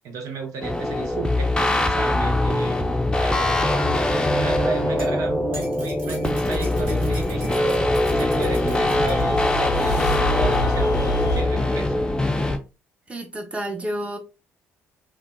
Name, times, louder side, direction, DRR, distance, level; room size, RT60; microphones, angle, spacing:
voice 1, 0.0-3.8 4.2-7.8 8.1-11.9, right 4 dB, 60° right, 0.6 m, -33 dB
sound 1, 0.6-12.6, left 1 dB, 15° left, 0.5 m, -22 dB
sound 2, 4.6-9.4 10.5-10.6, right 1 dB, 90° right, 1.0 m, -43 dB
sound 3, 7.3-11.4, left 1 dB, 70° left, 0.5 m, -28 dB
voice 2, 13.1-14.2, right 1 dB, 20° right, 1.0 m, -30 dB
3.2 x 2.2 x 2.6 m
hypercardioid pair, 50°, 6 cm